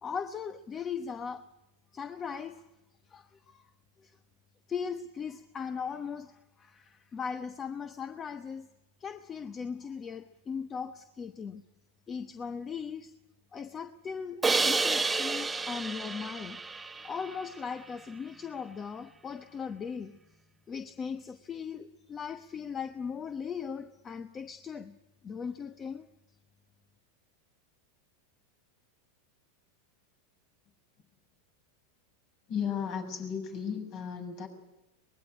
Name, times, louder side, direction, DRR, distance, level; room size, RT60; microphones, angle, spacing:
voice 1, 0.0-1.5 1.9-2.6 3.1-3.7 4.0-4.2 4.7-8.7 9.0-11.6 12.1-13.1 13.5-16.6 17.0-20.2 20.7-24.9 25.2-26.1, left 6 dB, 25° left, 1.0 m, -38 dB
Crash cymbal, 14.4-17.5, right 4 dB, 10° right, 1.0 m, -30 dB
voice 2, 32.5-34.5, left 7 dB, 50° left, 7.0 m, -34 dB
23.5 x 20.0 x 9.9 m
hypercardioid pair, 115°, 0 cm